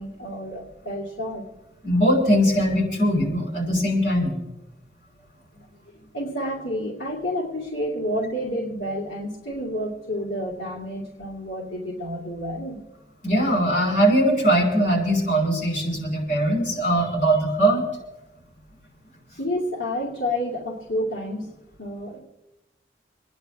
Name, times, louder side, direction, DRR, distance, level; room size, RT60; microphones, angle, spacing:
voice 1, 0.0-1.4 6.1-12.8 19.4-21.5 21.8-22.2, equal, 60° left, -6 dB, 2.5 m, -29 dB
voice 2, 1.8-4.3 13.2-17.8, right 1 dB, 45° left, -3 dB, 5.6 m, -21 dB
28.0 x 10.5 x 3.5 m, 1.0 s
head